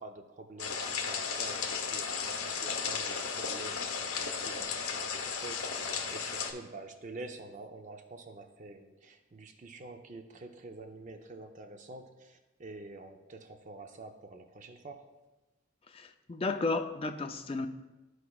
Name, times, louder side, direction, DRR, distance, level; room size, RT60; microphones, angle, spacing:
voice 1, 0.0-15.1, right 2 dB, 35° right, 6 dB, 0.5 m, -47 dB
sound 1, 0.6-6.5, left 6 dB, 85° left, 0.8 m, -35 dB
voice 2, 15.9-17.7, left 3 dB, 25° left, 6 dB, 0.4 m, -33 dB
13.0 x 4.7 x 2.3 m, 1.1 s
head